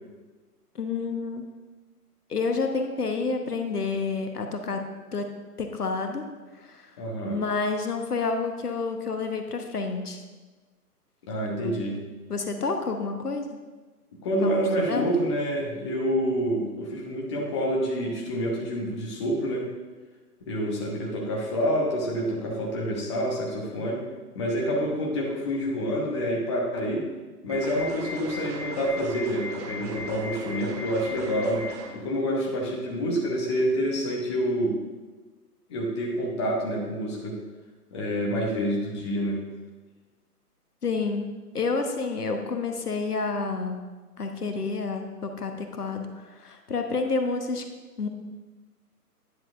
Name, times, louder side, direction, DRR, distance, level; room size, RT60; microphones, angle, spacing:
voice 1, 0.7-1.4 2.3-4.8 5.1-5.3 5.6-6.2 6.6-6.8 7.3-10.2 11.6-11.8 12.3-13.5 14.4-15.1 40.8-41.3 41.5-43.8 44.2-47.6 48.0-48.1, left 4 dB, 75° left, 5 dB, 1.0 m, -29 dB
voice 2, 7.0-7.4 11.3-12.0 14.2-19.7 20.5-24.0 24.3-27.1 27.4-31.7 31.9-34.8 35.7-37.4 37.9-39.4, equal, 20° left, -2 dB, 0.9 m, -27 dB
sound 1, 27.5-31.9, equal, 25° right, 1.1 m, -37 dB
9.9 x 7.3 x 2.6 m, 1.3 s
figure-of-eight pair, 135°, 47 cm